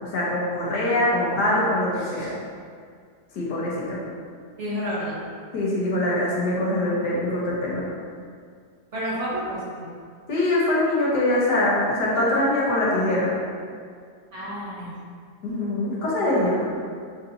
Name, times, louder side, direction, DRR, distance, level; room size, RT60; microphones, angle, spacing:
voice 1, 0.0-2.3 3.3-4.0 5.5-7.8 10.3-13.3 15.4-16.7, left 1 dB, 90° left, -5 dB, 1.6 m, -23 dB
voice 2, 2.0-2.3 4.6-5.2 8.9-9.9 14.3-14.9, equal, 55° right, -8 dB, 1.0 m, -30 dB
6.6 x 2.7 x 2.7 m, 2.1 s
omnidirectional pair, 1.7 m